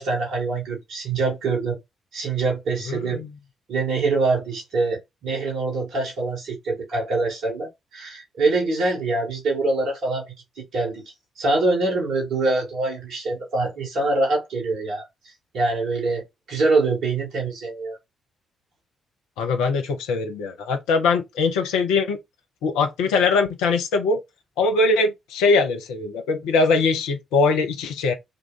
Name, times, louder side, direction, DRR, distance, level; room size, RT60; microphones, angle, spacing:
voice 1, 0.0-1.8 2.1-3.2 3.7-11.0 11.4-15.1 15.5-18.0, right 3 dB, 65° right, 2.1 m, -24 dB
voice 2, 2.9-3.3 19.4-22.2 22.6-24.2 24.6-28.1, left 4 dB, 70° left, 0.7 m, -21 dB
3.9 x 2.4 x 3.7 m
figure-of-eight pair, 40°, 0 cm